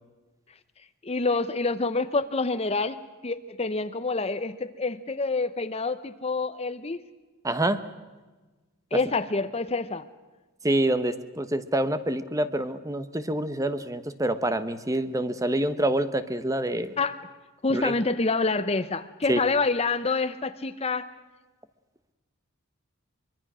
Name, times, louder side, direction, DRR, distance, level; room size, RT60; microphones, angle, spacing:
voice 1, 1.0-7.0 8.9-10.1 17.0-17.2 17.6-21.1, left 3 dB, 30° left, 12 dB, 0.7 m, -27 dB
voice 2, 7.4-7.8 10.6-16.9 17.7-17.9 19.3-19.4, right 1 dB, 15° right, 11 dB, 1.0 m, -26 dB
24.0 x 24.0 x 6.3 m, 1.3 s
head